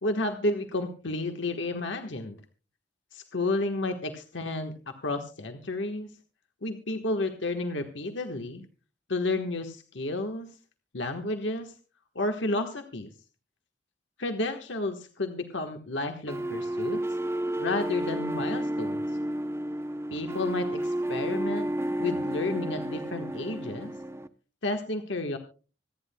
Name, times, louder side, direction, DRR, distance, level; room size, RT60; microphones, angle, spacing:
voice 1, 0.0-2.4 3.1-6.1 6.6-8.7 9.1-10.5 10.9-11.7 12.1-13.1 14.2-17.0 17.6-19.0 20.1-21.7 22.0-23.9 24.6-25.4, left 2 dB, 75° left, 5 dB, 1.3 m, -31 dB
sound 1, 16.3-24.3, right 1 dB, 15° right, 0.6 m, -31 dB
26.0 x 10.0 x 2.2 m, 0.35 s
head